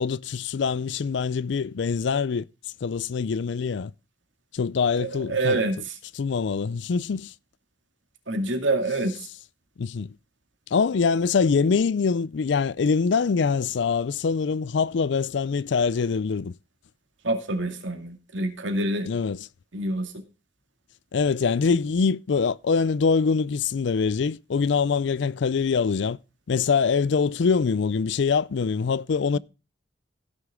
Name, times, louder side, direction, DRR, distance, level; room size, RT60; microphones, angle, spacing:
voice 1, 0.0-2.5 2.8-3.9 4.5-5.6 6.1-7.3 9.8-10.1 10.7-16.5 19.0-19.4 21.1-26.2 26.5-29.4, left 5 dB, 70° left, 0.4 m, -24 dB
voice 2, 5.0-5.9 8.3-9.1 17.2-19.1 19.7-20.1 29.3-29.4, right 2 dB, 75° right, 2.2 m, -26 dB
16.5 x 6.6 x 3.7 m
head